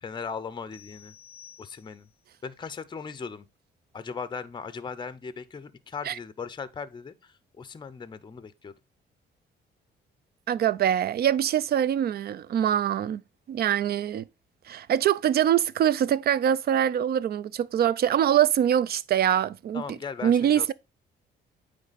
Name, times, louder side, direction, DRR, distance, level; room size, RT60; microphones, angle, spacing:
voice 1, 0.0-1.1 1.6-2.1 2.4-3.5 3.9-8.7 19.7-20.7, left 5 dB, 25° left, 0.5 m, -38 dB
sound 1, 0.7-2.2, left 8 dB, 20° right, 1.5 m, -52 dB
voice 2, 10.5-13.2 13.5-14.2 14.7-19.8 20.2-20.7, right 10 dB, 55° right, 0.4 m, -24 dB
8.8 x 3.3 x 4.0 m
cardioid pair, 90°, 20 cm